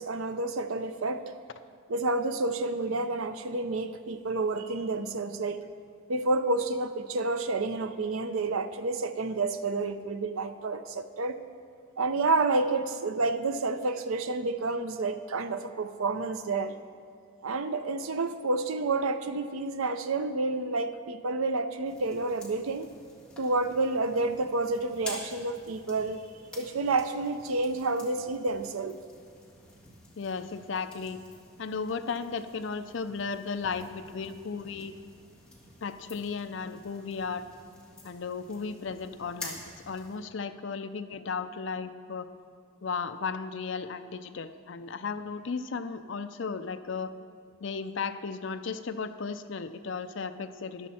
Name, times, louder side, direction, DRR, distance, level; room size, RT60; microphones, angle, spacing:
voice 1, 0.0-1.3 1.9-5.7 6.1-11.4 12.0-16.7 17.4-22.9 23.4-26.3 26.6-29.0, right 3 dB, 80° right, 10 dB, 0.6 m, -29 dB
sound 1, 21.8-40.2, left 2 dB, 5° left, 1.7 m, -49 dB
voice 2, 30.2-31.2 31.6-34.9 35.8-37.4 38.0-39.6 39.9-42.3 42.8-47.1 47.6-50.9, left 5 dB, 60° left, 10 dB, 0.5 m, -35 dB
13.5 x 11.0 x 4.3 m, 2.2 s
head